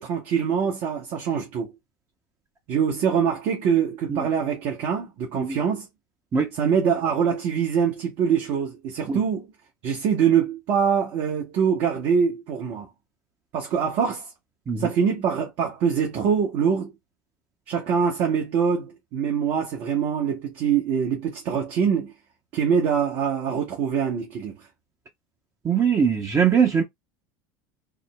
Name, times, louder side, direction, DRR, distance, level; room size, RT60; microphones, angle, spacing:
voice 1, 0.0-1.7 2.7-5.9 6.5-9.5 9.8-12.9 13.5-14.3 14.8-16.9 17.7-22.1 22.5-24.6, right 7 dB, 55° right, 1.0 m, -24 dB
voice 2, 25.6-26.8, right 6 dB, 30° right, 0.7 m, -21 dB
3.6 x 2.0 x 2.2 m
hypercardioid pair, 80°, 11 cm